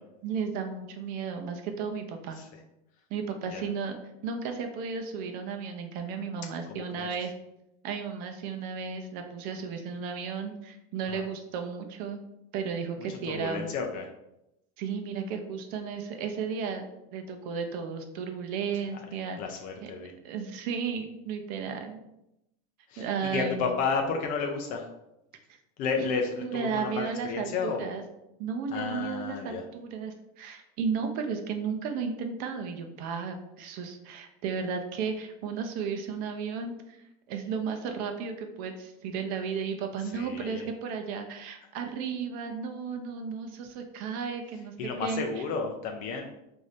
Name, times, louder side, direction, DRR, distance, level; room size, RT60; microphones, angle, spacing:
voice 1, 0.2-2.4 3.1-7.3 7.8-12.2 12.5-13.7 14.8-16.8 17.1-19.4 19.8-19.9 20.2-22.0 23.0-23.7 26.0-26.1 26.4-28.0 28.4-36.7 37.3-44.7 45.0-45.2, right 6 dB, 50° right, 5 dB, 0.6 m, -34 dB
voice 2, 6.7-7.1 11.1-11.2 13.0-14.1 19.4-20.1 22.9-24.9 25.8-27.9 28.7-29.6 40.1-40.7 44.8-46.2, left 5 dB, 45° left, 2 dB, 0.5 m, -32 dB
5.0 x 2.7 x 3.1 m, 0.87 s
supercardioid pair, 150°, 20 cm